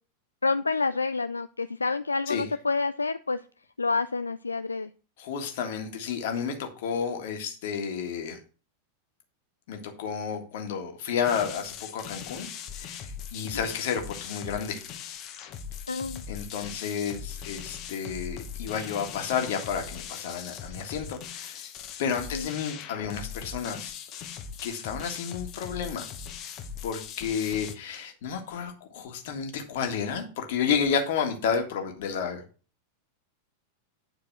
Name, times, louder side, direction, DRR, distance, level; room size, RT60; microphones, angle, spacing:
voice 1, 0.4-3.4 3.8-4.9 15.9-16.2 22.3-22.5, left 4 dB, 80° left, 12 dB, 0.3 m, -28 dB
voice 2, 5.2-8.4 9.7-12.5 12.7-14.8 16.3-21.6 22.0-23.9 24.6-26.1 26.8-32.4, left 7 dB, 55° left, 4 dB, 1.8 m, -31 dB
sound 1, 11.2-27.8, left 7 dB, 35° left, 1.1 m, -40 dB
9.4 x 4.7 x 6.1 m, 0.37 s
figure-of-eight pair, 90°, 0 cm